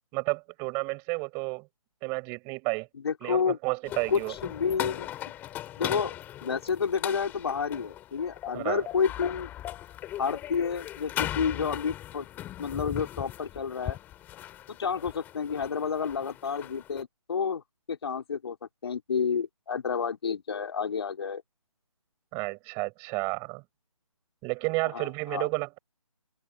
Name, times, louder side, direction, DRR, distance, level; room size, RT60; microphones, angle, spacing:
voice 1, 0.1-1.7 2.0-2.9 3.2-4.3 8.5-8.9 22.3-23.6 24.4-25.8, right 30 dB, 15° right, 6.7 m, -31 dB
voice 2, 3.0-3.6 4.1-5.3 5.8-6.1 6.4-9.5 10.2-12.3 12.6-14.0 14.7-17.6 17.9-18.6 18.8-21.4 24.9-25.5, left 6 dB, 45° left, 5.4 m, -30 dB
sound 1, 3.8-17.0, left 13 dB, 10° left, 3.4 m, -38 dB
figure-of-eight pair, 155°, 19 cm